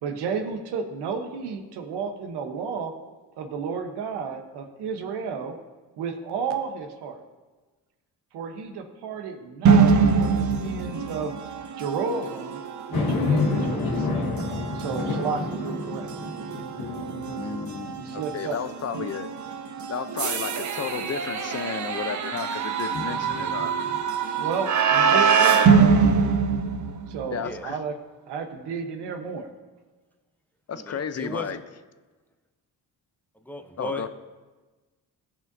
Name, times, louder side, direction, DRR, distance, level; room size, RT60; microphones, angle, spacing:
voice 1, 0.0-2.9 3.4-5.5 6.0-7.2 8.3-9.9 10.2-11.3 11.8-12.6 12.9-14.3 14.7-16.1 18.0-18.6 24.4-25.8 27.1-27.9 28.3-29.5, right 5 dB, 80° right, 6 dB, 1.1 m, -32 dB
sound 1, 9.6-27.4, right 6 dB, 45° right, 0.8 m, -24 dB
sound 2, 12.9-18.5 19.0-19.1 22.9-24.0, left 3 dB, 65° left, 1.6 m, -29 dB
voice 2, 17.3-19.3 19.9-23.7 27.3-27.8 30.7-31.6 33.8-34.1, left 7 dB, 40° left, 11 dB, 0.7 m, -33 dB
voice 3, 30.7-31.6 33.5-34.1, left 1 dB, 5° left, 6 dB, 0.7 m, -35 dB
16.0 x 5.7 x 2.7 m, 1.3 s
cardioid pair, 75°, 40 cm